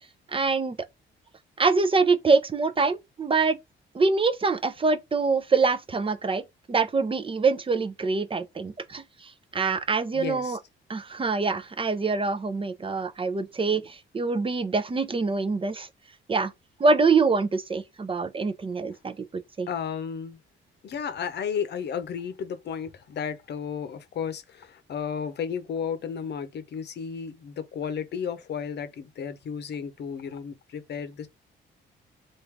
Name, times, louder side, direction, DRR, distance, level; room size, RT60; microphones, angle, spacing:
voice 1, 0.3-0.8 1.6-3.6 3.9-6.4 6.7-10.6 10.9-15.9 16.3-16.5 16.8-19.2 19.6-19.7, right 4 dB, 25° right, 0.7 m, -25 dB
voice 2, 10.1-10.6 19.7-20.4 20.8-31.3, left 7 dB, 60° left, 0.8 m, -33 dB
3.6 x 2.6 x 4.5 m
cardioid pair, 90°, 20 cm